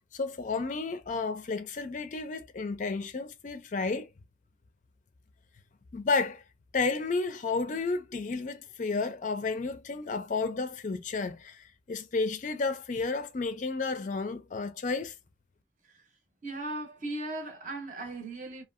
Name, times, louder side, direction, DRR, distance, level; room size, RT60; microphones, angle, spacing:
voice 1, 0.1-4.1 5.9-6.4 6.7-15.2, left 4 dB, 40° left, 0.4 m, -32 dB
voice 2, 16.4-18.6, right 2 dB, 40° right, 0.7 m, -37 dB
2.7 x 2.3 x 2.4 m
head